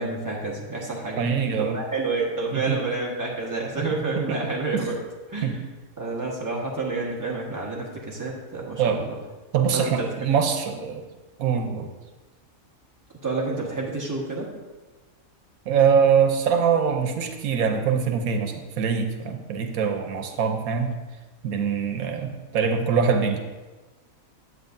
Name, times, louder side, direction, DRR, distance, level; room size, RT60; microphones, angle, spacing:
voice 1, 0.0-1.2 1.6-5.0 5.3-5.6 6.0-9.2 9.7-10.1 13.2-14.5, right 3 dB, 15° right, -3 dB, 1.4 m, -29 dB
voice 2, 1.2-1.8 2.5-2.8 3.9-4.4 4.7-4.9 5.4-5.6 8.8-9.0 9.5-11.1 11.4-11.9 15.7-20.9 21.4-23.4, right 6 dB, 90° right, 5 dB, 1.2 m, -23 dB
9.5 x 7.9 x 2.7 m, 1.2 s
omnidirectional pair, 1.5 m